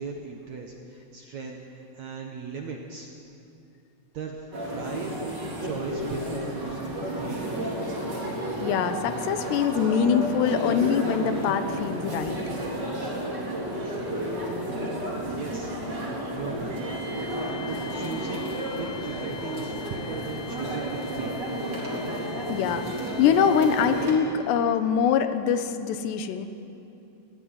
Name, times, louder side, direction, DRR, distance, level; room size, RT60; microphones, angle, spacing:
voice 1, 0.0-3.1 4.1-5.1 5.6-6.8 7.2-7.7 10.4-10.5 13.8-14.0 15.3-15.7 16.3-16.8 17.3-21.4, right 5 dB, 75° right, 1 dB, 1.7 m, -38 dB
sound 1, 4.5-24.1, right 1 dB, 25° right, 4.0 m, -32 dB
voice 2, 8.6-12.4 22.5-26.5, left 7 dB, 70° left, 9 dB, 3.0 m, -24 dB
sound 2, 16.7-24.4, left 6 dB, 45° right, 4.5 m, -44 dB
23.0 x 15.5 x 9.5 m, 2.8 s
omnidirectional pair, 5.4 m